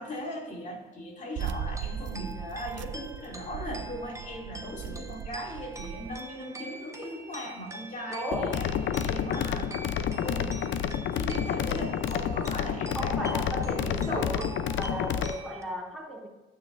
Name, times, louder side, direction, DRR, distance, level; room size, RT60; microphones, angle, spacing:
voice 1, 0.0-8.7 9.0-9.8 10.1-10.7 11.1-14.3, equal, 40° left, 0 dB, 2.7 m, -38 dB
sound 1, 1.4-15.6, right 2 dB, 15° right, 0.9 m, -45 dB
sound 2, 1.4-6.2, right 8 dB, 70° right, 0.6 m, -38 dB
voice 2, 8.1-8.6 12.9-16.3, equal, ahead, -4 dB, 2.9 m, -35 dB
sound 3, 8.3-15.3, left 8 dB, 70° left, 0.6 m, -29 dB
12.0 x 9.0 x 2.6 m, 1.1 s
cardioid pair, 90°, 20 cm